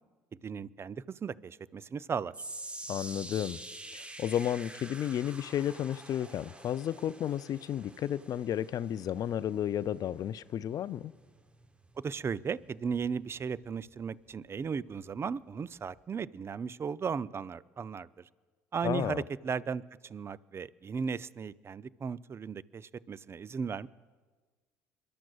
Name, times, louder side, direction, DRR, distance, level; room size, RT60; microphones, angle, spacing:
voice 1, 0.4-2.3 12.0-18.3 18.7-23.9, right 6 dB, 30° right, 0.5 m, -36 dB
sound 1, 2.3-14.7 15.0-15.3 16.0-16.1, right 2 dB, 15° right, 0.9 m, -48 dB
voice 2, 2.9-3.6 3.9-11.1 18.8-19.2, left 10 dB, 45° left, 0.4 m, -32 dB
29.0 x 12.0 x 2.4 m
figure-of-eight pair, 55°, 9 cm